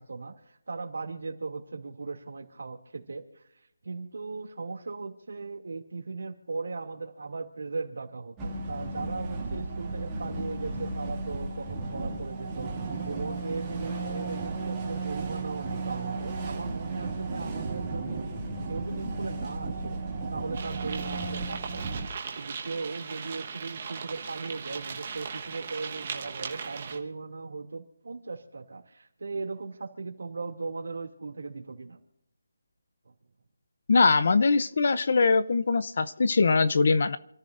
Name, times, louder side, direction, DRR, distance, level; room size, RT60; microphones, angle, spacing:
voice 1, 0.0-3.4 3.8-18.4 18.7-22.0 22.3-32.0 33.1-33.2, right 4 dB, 60° right, 3 dB, 2.5 m, -38 dB
sound 1, 8.4-22.1, right 3 dB, 10° right, 2.0 m, -34 dB
sound 2, 20.5-27.0, right 6 dB, 25° right, 1.3 m, -38 dB
voice 2, 33.9-37.2, left 4 dB, 40° left, 14 dB, 0.6 m, -22 dB
27.5 x 14.0 x 2.6 m, 0.83 s
hypercardioid pair, 175°, 0 cm